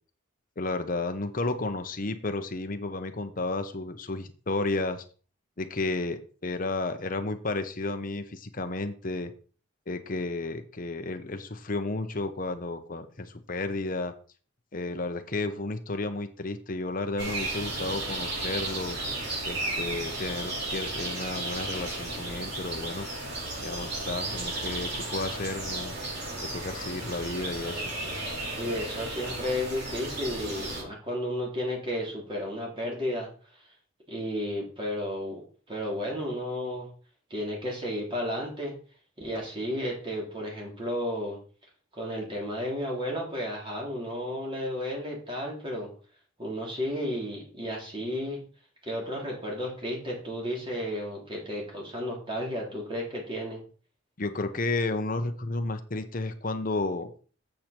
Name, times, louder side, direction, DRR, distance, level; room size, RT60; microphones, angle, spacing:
voice 1, 0.6-5.0 5.6-9.3 9.9-14.1 14.7-19.0 19.5-23.1 23.6-25.9 26.4-27.8 54.2-57.1, left 2 dB, 40° left, 8 dB, 0.9 m, -32 dB
sound 1, 17.2-30.8, right 2 dB, 55° right, 4.5 m, -34 dB
voice 2, 28.6-33.3 34.1-36.9 37.3-38.8 39.2-41.4 41.9-45.9 46.4-48.4 48.8-53.6, equal, 25° right, -2 dB, 3.3 m, -33 dB
7.7 x 7.0 x 4.4 m, 0.39 s
head